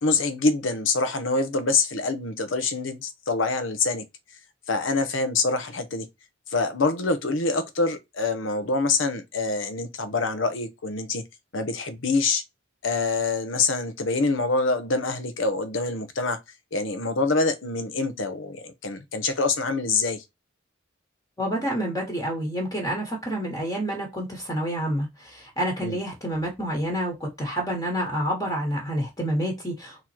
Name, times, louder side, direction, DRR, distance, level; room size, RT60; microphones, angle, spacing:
voice 1, 0.0-4.0 4.7-6.1 6.5-11.2 11.5-12.4 12.8-16.4 16.7-20.2 25.8-26.0, left 3 dB, 90° left, 0.9 m, -25 dB
voice 2, 21.4-30.1, equal, 20° left, 1.3 m, -28 dB
3.9 x 3.0 x 4.4 m
head